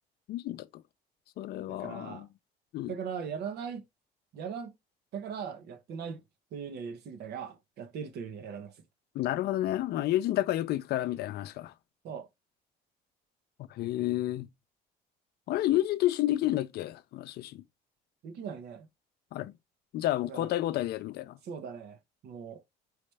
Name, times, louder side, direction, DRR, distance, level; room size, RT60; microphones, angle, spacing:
voice 1, 0.3-0.7 1.4-2.3 2.7-2.9 9.1-11.7 13.7-14.5 15.5-17.6 19.3-19.5 19.9-21.4, left 14 dB, 70° left, 0.5 m, -30 dB
voice 2, 1.7-2.3 2.9-3.8 4.3-4.7 5.1-6.2 6.5-8.7 12.0-12.3 18.2-18.9 20.3-20.5 21.4-22.0 22.2-22.6, right 6 dB, 70° right, 1.0 m, -39 dB
4.8 x 3.2 x 3.4 m
cardioid pair, 110°, 17 cm